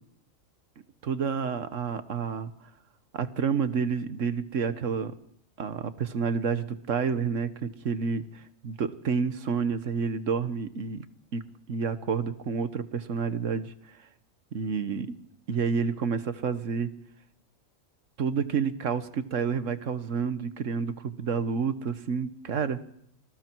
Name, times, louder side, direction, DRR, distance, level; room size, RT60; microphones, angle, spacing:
voice 1, 1.0-2.5 3.1-5.1 5.6-11.0 11.3-13.7 14.5-15.1 15.5-16.9 18.2-22.8, right 6 dB, 65° right, 12 dB, 1.5 m, -29 dB
28.0 x 20.5 x 4.6 m, 0.70 s
omnidirectional pair, 1.4 m